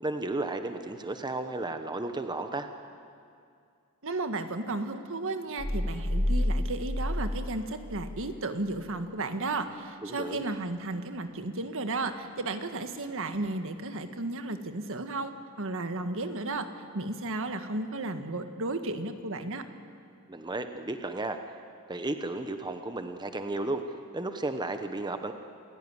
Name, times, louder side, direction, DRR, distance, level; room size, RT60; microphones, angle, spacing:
voice 1, 0.0-2.7 10.0-10.4 20.3-21.4 21.9-23.8 24.1-25.3, right 2 dB, 20° right, 7 dB, 1.0 m, -33 dB
voice 2, 4.0-15.3 15.6-16.7 16.9-19.6, right 2 dB, 65° right, 8 dB, 1.6 m, -33 dB
sound 1, 5.6-8.3, left 1 dB, 10° left, 0.6 m, -30 dB
27.5 x 16.5 x 9.7 m, 2.4 s
head